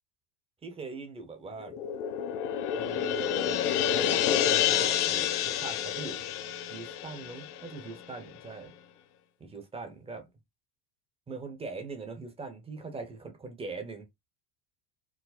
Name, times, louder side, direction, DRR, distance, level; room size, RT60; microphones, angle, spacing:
voice 1, 0.6-1.8 2.7-3.5 3.8-6.2 6.7-8.7 9.4-10.3 11.3-14.1, right 4 dB, 10° right, 0.8 m, -41 dB
sound 1, 1.6-8.2, left 10 dB, 75° left, 1.0 m, -29 dB
4.8 x 2.0 x 4.1 m
supercardioid pair, 155°, 47 cm